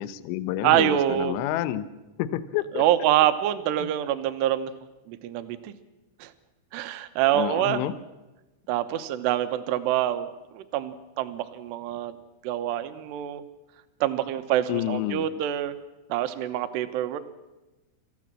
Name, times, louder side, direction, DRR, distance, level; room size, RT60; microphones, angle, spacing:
voice 1, 0.0-1.9 2.2-2.8 3.8-3.9 7.3-7.9 14.7-15.3, left 13 dB, 80° left, 13 dB, 3.2 m, -29 dB
voice 2, 0.6-1.3 2.8-4.7 5.1-5.7 6.2-6.3 6.7-7.8 8.7-12.1 12.4-13.4 14.0-15.7 16.1-17.2, right 12 dB, 75° right, 10 dB, 2.7 m, -25 dB
28.5 x 14.5 x 7.5 m, 1.1 s
omnidirectional pair, 5.9 m